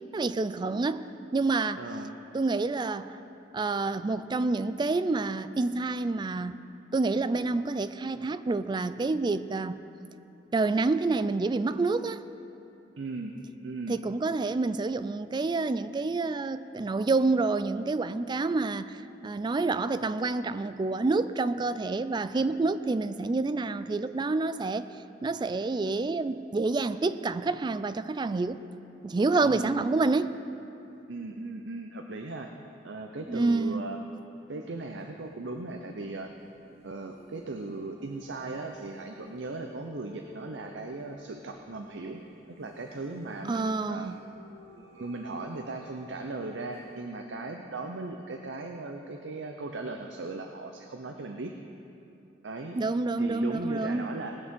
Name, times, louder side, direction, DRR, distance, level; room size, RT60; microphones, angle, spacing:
voice 1, 0.1-1.8 2.3-3.2 3.5-6.6 6.9-9.8 10.5-12.2 13.9-24.9 25.2-28.6 29.0-30.4 33.3-33.9 43.5-44.2 52.8-54.1, right 3 dB, 25° right, 13 dB, 0.3 m, -28 dB
voice 2, 1.8-2.1 13.0-13.4 13.6-14.0 29.4-29.9 31.1-32.5 32.8-34.0 34.5-36.3 36.8-44.1 44.8-51.5 52.4-52.8 53.2-54.5, right 2 dB, 85° right, 4 dB, 0.7 m, -38 dB
sound 1, 34.6-47.0, left 1 dB, 35° left, 2.5 m, -54 dB
19.5 x 6.5 x 5.3 m, 2.8 s
head